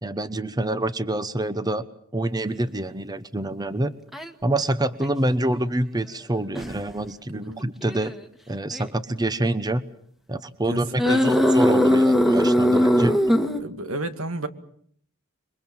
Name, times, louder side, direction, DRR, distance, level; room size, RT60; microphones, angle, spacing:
voice 1, 0.0-1.9 2.1-3.9 4.4-8.1 8.5-9.9 10.3-13.2, right 1 dB, 20° right, 13 dB, 1.0 m, -26 dB
sound 1, 4.1-4.3 5.0-5.1 6.5-6.8 7.8-8.1 8.7-8.9 11.0-13.6, equal, ahead, 1.6 m, -19 dB
voice 2, 10.7-11.5 12.9-13.2 13.5-14.5, right 2 dB, 85° right, 9 dB, 2.4 m, -32 dB
27.5 x 23.0 x 7.3 m, 0.64 s
head